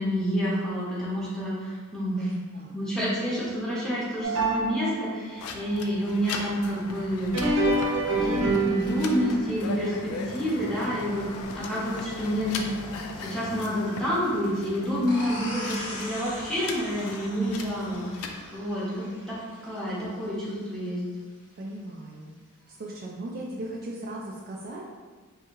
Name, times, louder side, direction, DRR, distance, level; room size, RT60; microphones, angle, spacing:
voice 1, 0.0-2.3 2.7-7.7 8.1-11.3 11.5-12.7 13.2-19.4 19.6-21.0, equal, ahead, -9 dB, 0.9 m, -29 dB
voice 2, 2.1-2.7 21.6-22.3 22.7-24.9, right 1 dB, 40° right, -3 dB, 0.3 m, -38 dB
sound 1, 4.2-5.4 7.2-11.6 12.0-12.1 13.0-13.1 13.9-14.0, right 2 dB, 65° right, 0.7 m, -28 dB
sound 2, 5.4-18.3, left 4 dB, 70° left, 0.3 m, -39 dB
sound 3, 15.1-20.5, left 1 dB, 90° left, 1.0 m, -40 dB
2.8 x 2.8 x 3.5 m, 1.5 s
head